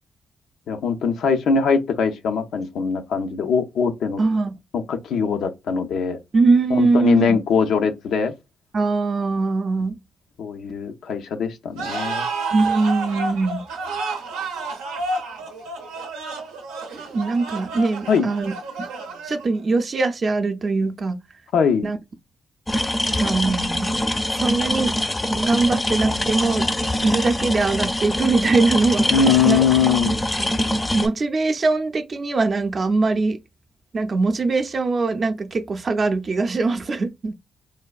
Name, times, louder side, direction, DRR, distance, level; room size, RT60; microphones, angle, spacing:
voice 1, 0.7-4.2 4.7-6.2 6.7-8.3 10.4-12.3 18.1-18.3 21.5-21.9 29.1-30.2, left 6 dB, 75° left, 0.5 m, -21 dB
voice 2, 4.2-4.6 6.3-7.4 8.7-10.0 12.5-13.7 16.9-18.5 19.2-21.2 21.8-22.0 23.2-23.9 24.3-25.0 25.3-29.1 29.4-29.6 30.3-30.5 30.9-33.4 33.9-37.3, right 3 dB, 45° right, 0.5 m, -22 dB
sound 1, 11.8-19.6, right 3 dB, 90° right, 0.6 m, -30 dB
sound 2, 22.7-31.1, left 1 dB, 20° left, 0.5 m, -23 dB
3.3 x 2.2 x 2.3 m
supercardioid pair, 50°, 0 cm